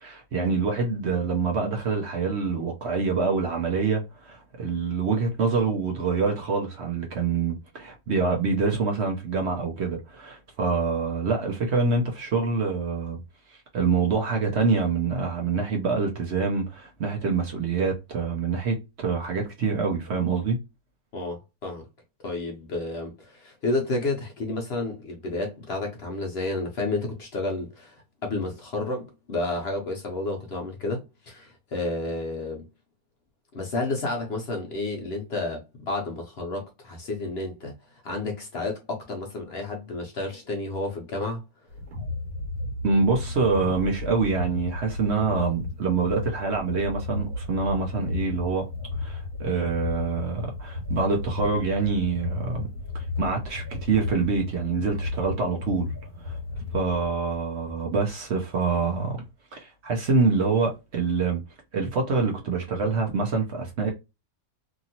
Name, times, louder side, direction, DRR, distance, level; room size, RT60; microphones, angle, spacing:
voice 1, 0.0-13.2 13.5-20.6 42.8-48.7 49.0-52.7 52.9-55.9 56.2-56.4 56.7-59.2 59.5-61.4 61.7-63.9, right 4 dB, 60° right, 0.9 m, -26 dB
voice 2, 21.1-21.9 22.2-32.6 33.5-37.7 38.0-41.4, left 2 dB, 55° left, 0.8 m, -31 dB
sound 1, 41.7-57.3, left 2 dB, 85° right, 1.5 m, -33 dB
2.9 x 2.6 x 2.7 m
omnidirectional pair, 1.6 m